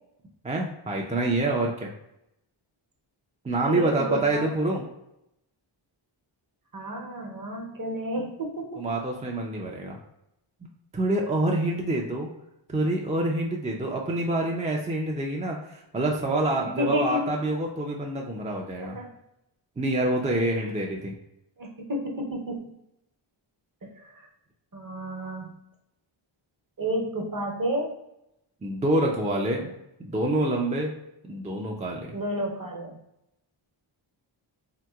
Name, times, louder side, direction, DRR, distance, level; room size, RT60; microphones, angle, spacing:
voice 1, 0.4-1.9 3.4-4.9 8.2-8.3 8.8-10.0 10.9-12.3 12.7-19.0 19.8-21.1 28.6-29.7 30.0-30.9 31.2-32.2, right 1 dB, 15° right, 0 dB, 0.3 m, -27 dB
voice 2, 3.7-4.5 6.7-8.7 16.8-17.4 18.8-19.1 21.6-22.7 23.9-24.3 24.7-25.6 26.8-27.9 32.1-33.0, equal, 45° right, 0 dB, 0.8 m, -31 dB
3.4 x 2.9 x 2.3 m, 0.83 s
wide cardioid pair, 85°, 49 cm